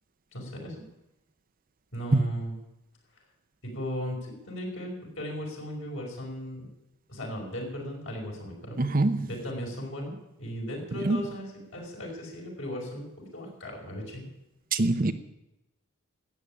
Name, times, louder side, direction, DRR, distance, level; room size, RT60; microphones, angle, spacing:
voice 1, 0.3-0.8 1.9-2.6 3.6-6.7 7.1-8.8 9.3-10.1 10.4-11.5 11.7-14.3, equal, 55° left, 5.4 m, -37 dB
voice 2, 8.8-9.3 10.9-11.2 14.7-15.1, right 2 dB, 40° right, 0.7 m, -24 dB
13.5 x 8.9 x 10.0 m
head